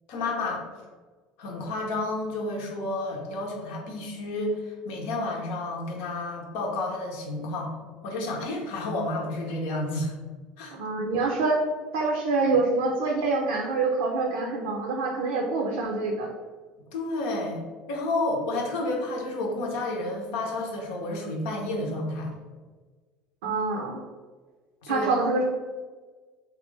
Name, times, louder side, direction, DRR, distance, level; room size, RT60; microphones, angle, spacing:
voice 1, 0.1-0.6 1.4-7.7 8.0-10.1 10.6-10.8 16.9-22.3 24.8-25.1, left 2 dB, 75° left, 0 dB, 0.8 m, -30 dB
voice 2, 10.7-11.6 11.9-16.3 23.4-24.0 24.9-25.4, right 3 dB, 85° right, 0 dB, 0.5 m, -26 dB
3.2 x 2.4 x 3.2 m, 1.4 s
hypercardioid pair, 80°, 4 cm